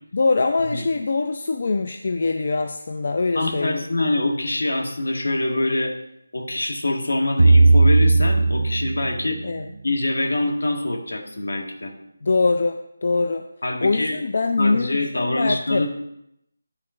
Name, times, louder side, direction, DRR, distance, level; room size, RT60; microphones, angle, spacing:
voice 1, 0.1-3.8 9.4-9.7 12.2-13.5 13.8-15.9, left 3 dB, 50° left, 6 dB, 0.5 m, -23 dB
voice 2, 3.3-5.9 6.3-9.4 9.8-11.9 13.6-14.2 14.6-15.9, left 2 dB, 75° left, 3 dB, 1.7 m, -24 dB
sound 1, 7.4-9.8, right 3 dB, 80° right, 0.4 m, -16 dB
10.5 x 4.3 x 6.1 m, 0.79 s
figure-of-eight pair, 165°, 0 cm